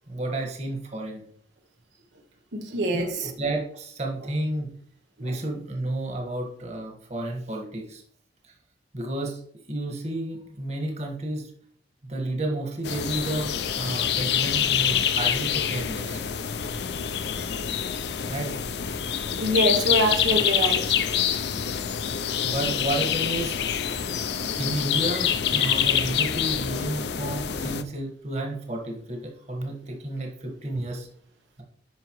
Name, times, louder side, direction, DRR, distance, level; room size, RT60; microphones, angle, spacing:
voice 1, 0.1-1.2 2.9-3.1 3.4-4.7 5.2-8.0 8.9-9.4 9.7-11.5 12.1-16.2 18.3-18.5 22.4-23.6 24.5-31.1, right 1 dB, 40° right, 2 dB, 1.5 m, -31 dB
voice 2, 2.5-3.3 19.3-21.1, right 1 dB, 85° right, 4 dB, 1.0 m, -25 dB
sound 1, 12.8-27.8, left 9 dB, 70° left, 0.5 m, -26 dB
9.3 x 5.6 x 3.1 m, 0.62 s
head